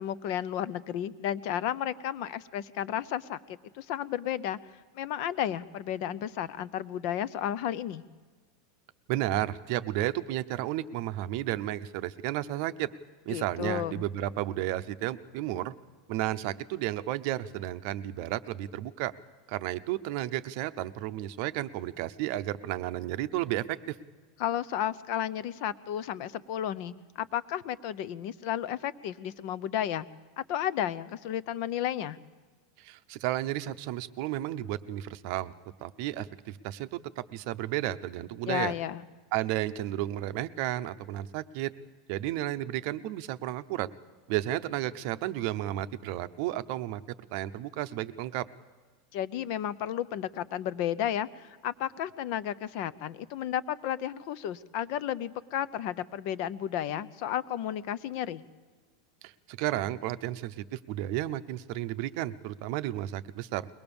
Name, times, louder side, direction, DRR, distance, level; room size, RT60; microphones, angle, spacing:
voice 1, 0.0-3.4 3.7-4.6 4.9-8.0 13.3-14.0 24.4-30.1 30.5-32.2 38.4-39.0 49.1-58.4, left 10 dB, 45° left, 17 dB, 0.7 m, -33 dB
voice 2, 9.1-12.9 13.3-15.7 16.1-19.1 19.5-24.0 32.8-35.5 35.8-38.7 39.3-41.7 42.1-43.9 44.3-47.0 47.3-48.5 59.2-63.7, right 14 dB, 45° right, 11 dB, 0.7 m, -32 dB
22.5 x 19.5 x 7.0 m, 1.4 s
supercardioid pair, 170°, 2 cm